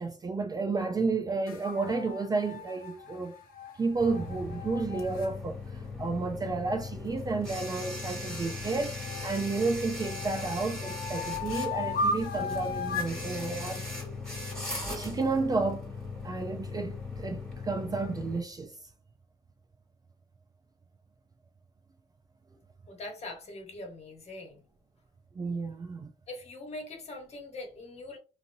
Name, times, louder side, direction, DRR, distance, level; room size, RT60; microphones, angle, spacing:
voice 1, 0.0-3.3 3.8-13.9 14.9-15.9 16.2-18.7 25.4-26.1, right 3 dB, 25° right, 0.4 m, -31 dB
sound 1, 1.5-5.3 8.2-9.5 10.0-13.2, left 3 dB, 60° left, 0.9 m, -36 dB
sound 2, 4.0-18.4, left 3 dB, 5° left, 1.5 m, -38 dB
voice 2, 22.9-24.6 26.3-28.2, left 2 dB, 40° left, 1.1 m, -42 dB
2.9 x 2.7 x 2.6 m
cardioid pair, 110°, 17 cm